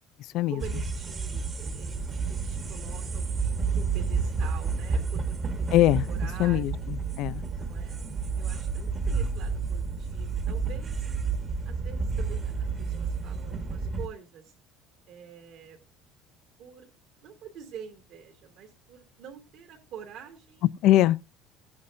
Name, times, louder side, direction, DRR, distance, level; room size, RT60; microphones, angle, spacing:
voice 1, 0.5-5.3 6.1-6.9 7.5-8.0 8.4-11.1 11.6-14.4 15.0-15.8 16.6-16.9 17.2-20.7, right 8 dB, 55° right, 2.9 m, -46 dB
sound 1, 0.6-14.1, right 5 dB, 25° right, 1.4 m, -30 dB
voice 2, 5.7-6.1 6.4-7.4 20.8-21.3, left 14 dB, 55° left, 0.4 m, -22 dB
16.0 x 9.6 x 2.6 m
cardioid pair, 160°, 0 cm